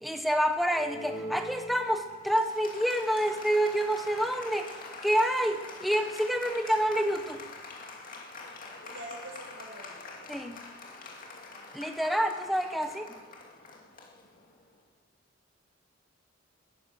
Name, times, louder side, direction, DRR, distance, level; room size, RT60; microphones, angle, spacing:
voice 1, 0.0-4.8 5.0-7.4 10.3-10.6 11.7-13.1, equal, ahead, 5 dB, 1.0 m, -28 dB
Applause, 0.7-14.7, left 2 dB, 45° left, 2.4 m, -44 dB
voice 2, 8.8-10.3 12.8-13.0, right 1 dB, 85° right, 0 dB, 5.3 m, -45 dB
19.5 x 10.5 x 7.0 m, 1.2 s
head